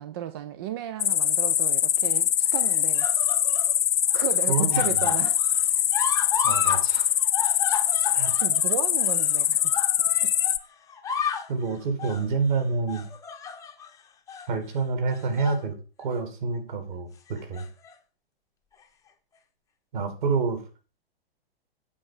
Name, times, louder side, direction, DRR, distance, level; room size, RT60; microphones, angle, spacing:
voice 1, 0.0-3.1 4.1-5.4 8.4-9.8 10.2-10.3, right 11 dB, 25° right, 0.4 m, -34 dB
sound 1, 1.0-10.6, left 11 dB, 50° left, 0.6 m, -23 dB
sound 2, 1.0-1.6 2.5-3.7 4.1-6.8 7.1-10.6 10.9-11.5 12.0-12.3 12.9-13.9 14.3-14.5 15.1-15.6 16.0-16.2 17.3-17.9 18.8-18.9, left 6 dB, 10° left, 0.8 m, -33 dB
voice 2, 4.5-5.1 6.4-7.1 8.1-8.4 11.5-13.1 14.5-17.6 19.9-20.6, right 4 dB, 50° right, 2.9 m, -28 dB
8.6 x 4.8 x 7.3 m
figure-of-eight pair, 115°, 30 cm